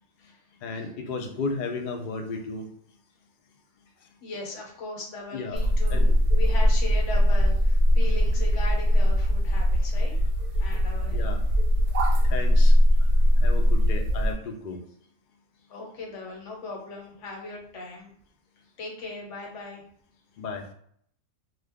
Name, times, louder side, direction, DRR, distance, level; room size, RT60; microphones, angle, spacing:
voice 1, 0.6-2.7 5.3-5.6 5.9-6.1 11.1-11.4 12.2-12.8 13.4-14.8 20.4-20.7, left 3 dB, 85° left, 4 dB, 0.4 m, -33 dB
voice 2, 4.2-10.1 10.6-11.2 15.7-18.1 18.8-19.8, left 2 dB, 65° left, -1 dB, 1.1 m, -38 dB
sound 1, 5.5-14.3, equal, 65° right, 0.8 m, -21 dB
2.3 x 2.2 x 3.4 m, 0.63 s
omnidirectional pair, 1.4 m